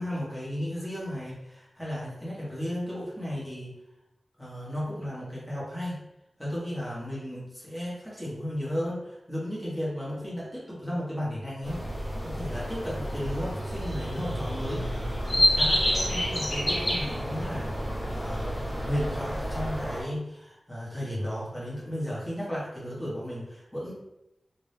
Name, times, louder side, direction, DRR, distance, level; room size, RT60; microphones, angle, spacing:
voice 1, 0.0-3.7 4.4-6.0 6.4-11.8 12.2-14.9 15.3-23.9, equal, 5° left, -8 dB, 1.3 m, -34 dB
sound 1, 11.6-20.0, equal, 60° left, 1.3 m, -29 dB
2.7 x 2.7 x 3.4 m, 0.86 s
wide cardioid pair, 95°, 0 cm